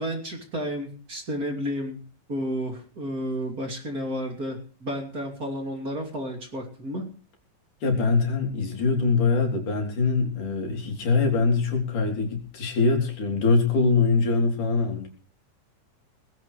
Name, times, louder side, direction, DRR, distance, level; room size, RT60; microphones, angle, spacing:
voice 1, 0.0-2.0 2.3-7.0, equal, 30° right, 3 dB, 3.1 m, -31 dB
voice 2, 7.8-15.1, left 4 dB, 85° left, 2 dB, 5.0 m, -23 dB
20.0 x 15.5 x 3.3 m, 0.39 s
omnidirectional pair, 3.5 m